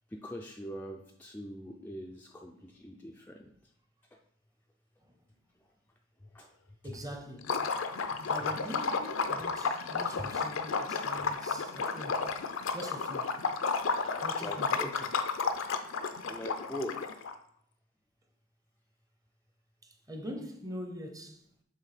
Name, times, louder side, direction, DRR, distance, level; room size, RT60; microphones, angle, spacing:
voice 1, 0.1-3.5 6.2-6.5 6.8-6.9 8.0-8.3 10.2-10.3 12.2-12.3 14.4-14.9 16.0-17.2, equal, 10° left, 0.4 m, -43 dB
voice 2, 6.8-7.6 8.3-12.3 12.7-13.3 14.2-15.1 19.8-21.5, equal, 15° right, 0.7 m, -43 dB
Liquid, 7.4-17.3, left 4 dB, 70° left, 0.5 m, -32 dB
7.6 x 3.2 x 5.0 m
head